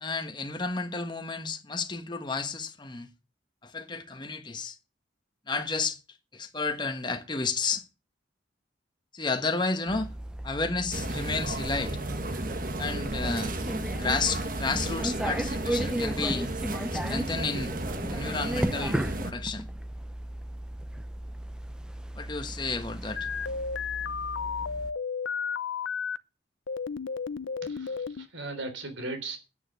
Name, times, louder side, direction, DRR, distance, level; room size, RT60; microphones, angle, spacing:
voice 1, 0.0-3.1 3.6-4.8 5.5-6.0 6.3-7.8 9.1-10.1 10.4-12.0 12.8-13.5 14.0-16.5 16.9-17.7 18.1-19.7 22.1-23.3, left 4 dB, 25° left, 1.3 m, -31 dB
sound 1, 9.9-24.9, right 1 dB, 5° right, 0.6 m, -35 dB
sound 2, 10.9-19.3, right 1 dB, 45° right, 1.5 m, -34 dB
sound 3, 23.2-26.2 26.7-28.3, left 6 dB, 80° left, 0.6 m, -33 dB
voice 2, 27.6-29.4, right 2 dB, 80° right, 3.5 m, -37 dB
9.3 x 9.1 x 7.6 m
head